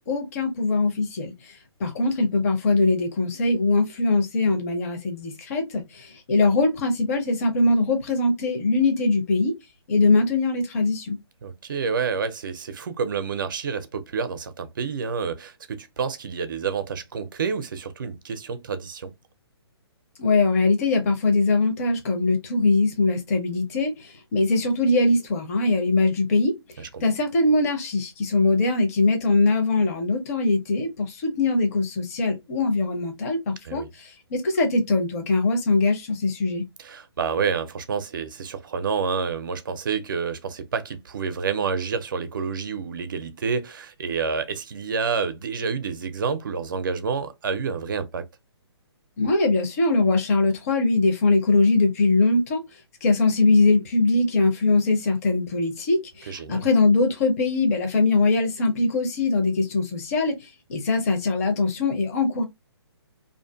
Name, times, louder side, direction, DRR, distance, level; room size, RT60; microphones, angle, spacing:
voice 1, 0.1-1.3 1.8-9.5 9.9-11.2 20.2-26.6 27.0-36.6 49.2-52.6 53.0-60.3 60.7-62.4, left 3 dB, 35° left, 0.7 m, -22 dB
voice 2, 11.4-19.1 26.8-27.0 33.6-33.9 36.8-48.2 56.3-56.7, right 5 dB, 50° right, 0.5 m, -29 dB
2.6 x 2.4 x 2.3 m
figure-of-eight pair, 130°, 14 cm